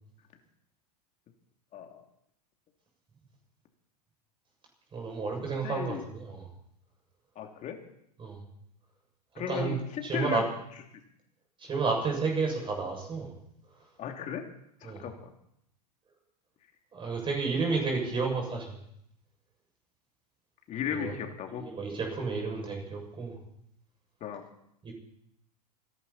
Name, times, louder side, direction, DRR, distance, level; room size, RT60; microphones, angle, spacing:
voice 1, 1.7-2.0 5.4-6.0 7.3-7.8 9.3-10.5 14.0-14.4 14.8-15.3 20.7-21.7 24.2-24.4, left 8 dB, 35° left, 3 dB, 3.0 m, -36 dB
voice 2, 4.9-6.5 8.2-8.4 9.5-9.8 10.0-10.4 11.6-13.3 14.8-15.0 16.9-18.8 20.9-21.1 21.6-23.4 24.8-24.9, right 4 dB, 25° right, 1 dB, 6.9 m, -31 dB
29.0 x 11.0 x 4.3 m, 0.74 s
hypercardioid pair, 105°, 21 cm